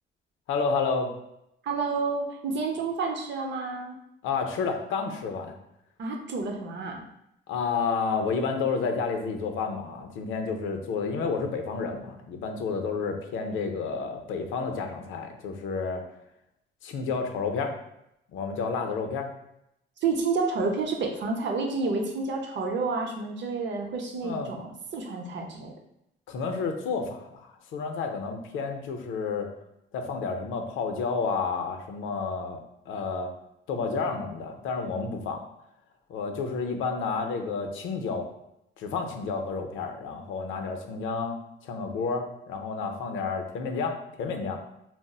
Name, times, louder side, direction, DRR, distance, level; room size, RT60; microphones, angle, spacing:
voice 1, 0.5-1.1 4.2-5.5 7.5-16.0 16.8-17.7 18.3-19.3 24.2-24.5 26.3-29.5 29.9-32.6 32.9-33.3 33.7-35.4 36.1-38.3 38.8-44.6, left 5 dB, 85° left, 5 dB, 0.5 m, -30 dB
voice 2, 1.6-3.9 6.0-7.0 20.0-25.7, right 4 dB, 65° right, 2 dB, 0.6 m, -29 dB
3.8 x 2.0 x 2.3 m, 0.82 s
cardioid pair, 90°, 20 cm